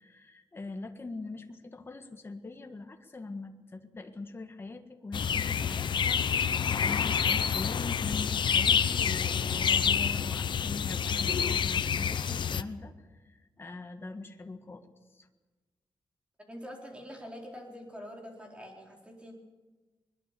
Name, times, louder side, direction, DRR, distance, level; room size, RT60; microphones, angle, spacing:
voice 1, 0.0-15.3, left 3 dB, 25° left, 5 dB, 1.6 m, -42 dB
sound 1, 5.1-12.6, left 7 dB, 60° left, 0.7 m, -28 dB
voice 2, 16.5-19.3, equal, 10° right, 0 dB, 4.3 m, -45 dB
21.5 x 21.0 x 6.9 m, 1.2 s
wide cardioid pair, 155°, 9 cm